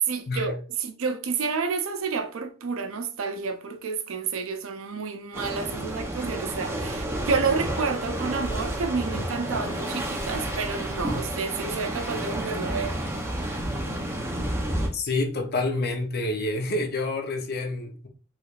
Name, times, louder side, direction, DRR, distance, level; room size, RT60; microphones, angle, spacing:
voice 1, 0.1-13.0, right 5 dB, 75° right, 0.5 m, -30 dB
sound 1, 5.3-14.9, right 1 dB, 10° right, 0.6 m, -30 dB
voice 2, 14.9-18.1, left 2 dB, 50° left, 0.6 m, -28 dB
3.2 x 3.1 x 2.4 m
head